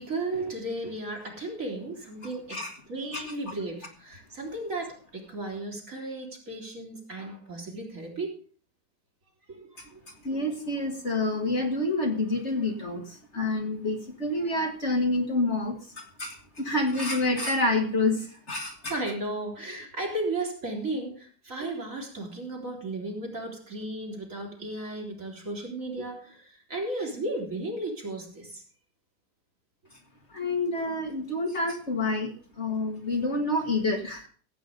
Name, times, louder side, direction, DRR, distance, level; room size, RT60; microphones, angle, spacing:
voice 1, 0.0-8.4 9.5-10.0 18.9-28.6, right 2 dB, 50° right, 0 dB, 3.9 m, -35 dB
voice 2, 10.2-19.0 30.3-34.3, left 2 dB, 40° left, 3 dB, 2.1 m, -28 dB
15.5 x 8.6 x 5.2 m, 0.42 s
omnidirectional pair, 1.8 m